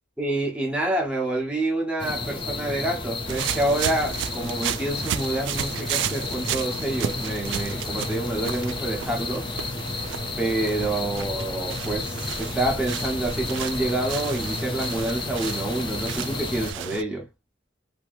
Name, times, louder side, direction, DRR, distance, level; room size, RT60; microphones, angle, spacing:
voice 1, 0.2-9.5 10.4-17.3, right 1 dB, 5° right, 1.1 m, -27 dB
sound 1, 2.0-16.7, left 3 dB, 25° left, 0.6 m, -32 dB
sound 2, 3.3-17.0, right 10 dB, 65° right, 0.3 m, -34 dB
3.0 x 2.9 x 2.5 m
head